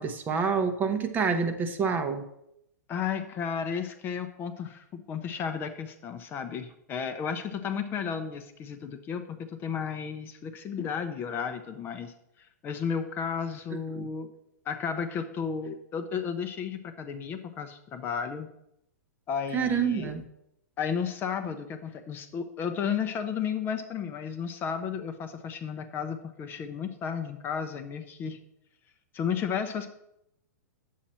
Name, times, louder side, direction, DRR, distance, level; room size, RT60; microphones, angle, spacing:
voice 1, 0.0-2.2 13.7-14.1 19.5-20.2, right 6 dB, 20° right, 9 dB, 0.7 m, -28 dB
voice 2, 2.9-14.3 14.7-18.5 19.3-20.1 20.8-28.4 29.1-29.9, left 7 dB, 25° left, 8 dB, 0.6 m, -33 dB
8.8 x 7.4 x 4.3 m, 0.80 s
hypercardioid pair, 140°, 9 cm